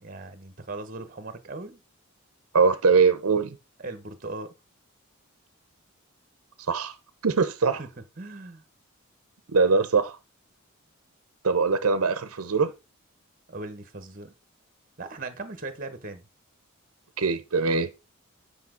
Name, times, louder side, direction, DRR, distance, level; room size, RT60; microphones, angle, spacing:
voice 1, 0.0-1.8 3.8-4.5 7.7-7.9 8.2-8.6 13.5-14.3 15.0-16.3, right 2 dB, 40° right, 1.1 m, -38 dB
voice 2, 2.5-3.6 6.7-6.9 7.2-7.8 9.5-10.2 11.4-12.7 17.2-17.9, right 4 dB, 85° right, 0.7 m, -22 dB
8.5 x 5.2 x 3.8 m
head